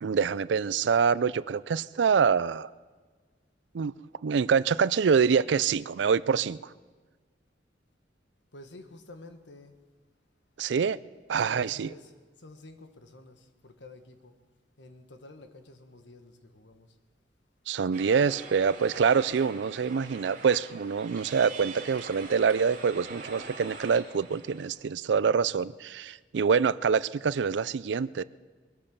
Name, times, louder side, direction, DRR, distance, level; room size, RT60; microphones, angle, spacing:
voice 1, 0.0-2.7 3.7-3.9 4.2-6.7 10.6-11.0 11.3-11.9 17.7-28.2, right 6 dB, 80° right, 19 dB, 0.4 m, -25 dB
voice 2, 8.5-9.8 11.4-14.3 14.8-17.0, left 2 dB, 85° left, 8 dB, 1.4 m, -50 dB
sound 1, 17.9-24.7, right 4 dB, 50° right, 2.5 m, -44 dB
22.0 x 8.5 x 7.0 m, 1.4 s
head